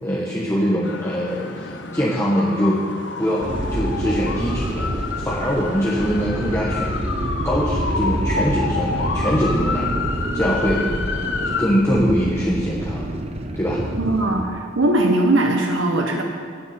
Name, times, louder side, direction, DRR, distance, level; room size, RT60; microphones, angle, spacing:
voice 1, 0.0-2.8 3.2-3.5 3.7-7.0 7.4-9.9 10.3-10.9 11.6-13.1 13.5-13.8, equal, 15° left, -6 dB, 1.5 m, -22 dB
sound 1, 0.8-11.7, left 4 dB, 65° left, 1.1 m, -29 dB
sound 2, 3.4-14.4, right 1 dB, 30° right, 1.1 m, -27 dB
voice 2, 13.9-16.2, right 2 dB, 85° right, 2 dB, 1.4 m, -20 dB
12.0 x 7.3 x 9.6 m, 2.4 s
head